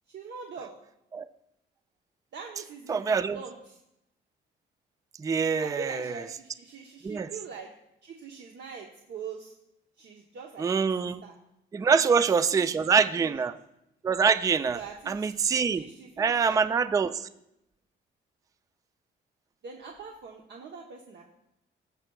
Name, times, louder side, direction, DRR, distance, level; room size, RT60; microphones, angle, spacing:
voice 1, 0.1-0.7 2.3-3.8 5.6-7.7 8.0-9.5 10.0-10.8 11.2-11.3 11.8-12.2 12.5-13.4 14.7-15.4 15.8-16.6 19.6-21.2, right 5 dB, 60° right, 1 dB, 0.9 m, -43 dB
voice 2, 2.9-3.4 5.2-6.1 7.0-7.3 10.6-11.2 11.7-13.6 14.0-14.8 15.1-15.9 16.2-17.3, right 5 dB, 15° right, 13 dB, 0.3 m, -25 dB
14.5 x 6.6 x 2.3 m, 0.84 s
cardioid pair, 90°, 20 cm